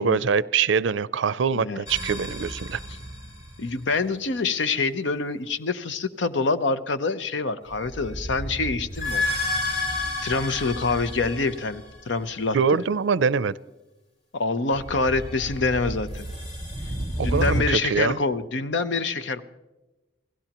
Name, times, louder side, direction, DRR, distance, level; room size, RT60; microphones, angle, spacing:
voice 1, 0.0-2.8 12.5-13.6 17.2-18.2, right 5 dB, 75° right, 19 dB, 0.5 m, -23 dB
sound 1, 1.9-3.8 7.7-12.2 14.7-17.6, left 1 dB, 35° left, 5.1 m, -31 dB
voice 2, 3.6-9.2 10.2-12.8 14.3-16.3 17.2-19.4, left 3 dB, 70° left, 12 dB, 0.8 m, -26 dB
28.0 x 17.0 x 3.0 m, 1.1 s
head